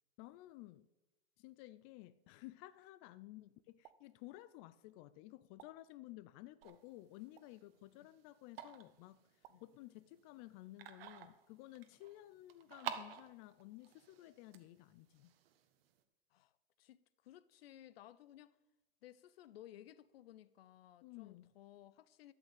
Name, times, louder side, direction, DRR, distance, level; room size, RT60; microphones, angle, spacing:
voice 1, 0.2-0.9 1.4-9.2 9.6-15.3 21.0-21.5, left 17 dB, 35° left, 0.5 m, -54 dB
sound 1, 3.8-4.0 5.6-5.7 7.4-7.5 9.4-9.6 11.0-11.2 12.9-13.1, right 13 dB, 50° right, 1.1 m, -58 dB
sound 2, 6.6-16.0, right 9 dB, 65° right, 1.6 m, -52 dB
voice 2, 16.8-18.6 19.0-22.3, left 12 dB, 65° left, 0.8 m, -58 dB
13.0 x 6.4 x 8.3 m
hypercardioid pair, 125°, 32 cm